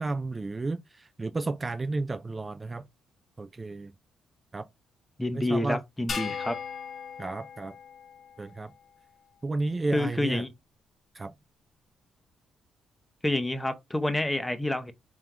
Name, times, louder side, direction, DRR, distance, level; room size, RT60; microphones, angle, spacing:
voice 1, 0.0-2.8 3.4-3.9 4.5-4.7 5.3-5.8 7.2-7.8 8.4-8.7 9.4-10.4 11.1-11.3, right 3 dB, 25° right, 0.3 m, -32 dB
voice 2, 5.2-6.6 9.9-10.5 13.2-14.9, left 1 dB, 10° left, 0.7 m, -28 dB
sound 1, 6.1-8.6, left 6 dB, 50° left, 1.0 m, -38 dB
3.6 x 3.6 x 2.9 m
cardioid pair, 90°, 0 cm